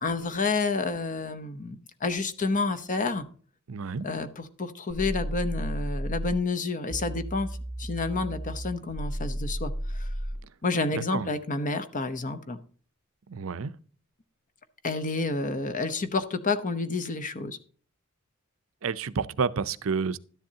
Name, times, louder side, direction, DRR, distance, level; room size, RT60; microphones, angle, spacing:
voice 1, 0.0-3.2 4.0-7.5 7.8-10.1 10.6-12.6 14.8-17.6, left 3 dB, 40° left, 0.8 m, -29 dB
voice 2, 3.7-4.1 11.1-11.3 13.3-13.7 18.8-20.2, right 5 dB, 70° right, 0.6 m, -29 dB
sound 1, 4.9-6.4 6.9-10.4, equal, 70° left, 6.2 m, -33 dB
12.5 x 10.5 x 2.8 m
head